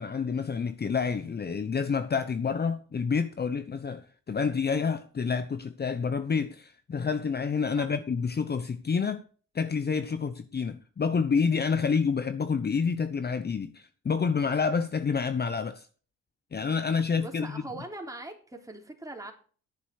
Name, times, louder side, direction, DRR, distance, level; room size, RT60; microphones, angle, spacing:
voice 1, 0.0-9.2 9.5-15.9 16.5-17.5, left 5 dB, 35° left, 1.0 m, -28 dB
voice 2, 17.2-19.3, right 2 dB, 10° right, 3.6 m, -41 dB
11.0 x 9.2 x 4.9 m
cardioid pair, 90°, 30 cm